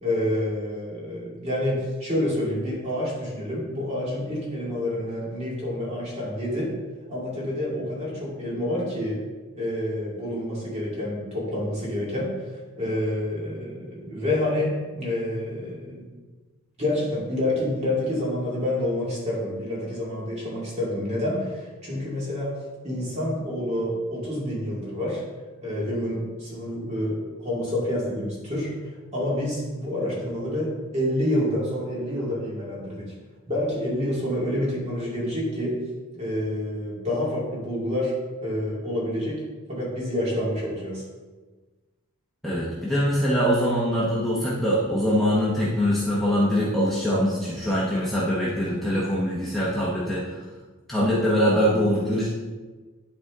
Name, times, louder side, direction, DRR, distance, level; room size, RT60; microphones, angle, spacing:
voice 1, 0.0-6.7 7.1-9.2 9.5-12.4 12.8-16.1 16.8-25.2 25.6-28.7 29.1-33.1 33.5-35.8 36.1-38.1 38.4-39.4 39.7-41.0, left 1 dB, 30° right, -5 dB, 2.4 m, -28 dB
voice 2, 42.4-50.4 50.9-52.3, equal, ahead, -8 dB, 1.1 m, -23 dB
11.5 x 4.2 x 3.7 m, 1.3 s
head